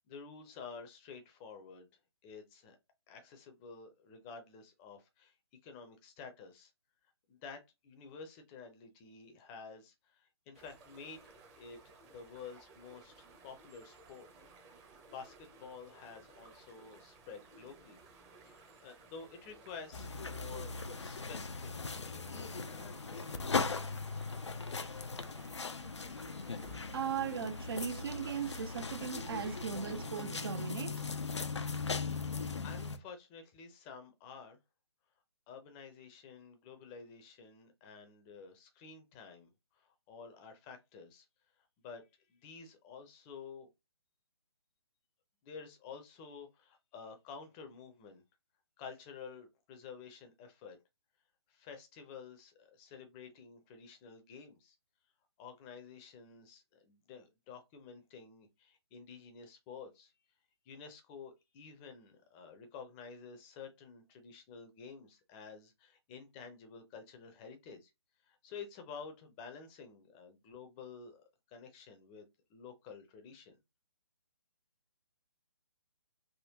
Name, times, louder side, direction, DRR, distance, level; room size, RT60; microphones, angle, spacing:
voice 1, 0.1-1.9 2.2-2.8 3.1-5.4 5.6-6.7 7.3-14.3 14.7-18.0 18.4-21.7 22.1-23.9 32.6-34.6 35.5-41.3 41.6-43.7 45.4-48.2 48.8-50.8 51.5-54.8 55.4-60.1 60.6-67.9 68.2-73.6, left 5 dB, 20° left, 0.6 m, -51 dB
sound 1, 10.5-29.9, right 3 dB, 20° right, 0.7 m, -59 dB
sound 2, 19.9-33.0, left 4 dB, 90° left, 0.5 m, -39 dB
voice 2, 26.9-31.3, right 7 dB, 55° right, 0.5 m, -38 dB
3.5 x 2.1 x 2.8 m
figure-of-eight pair, 140°, 14 cm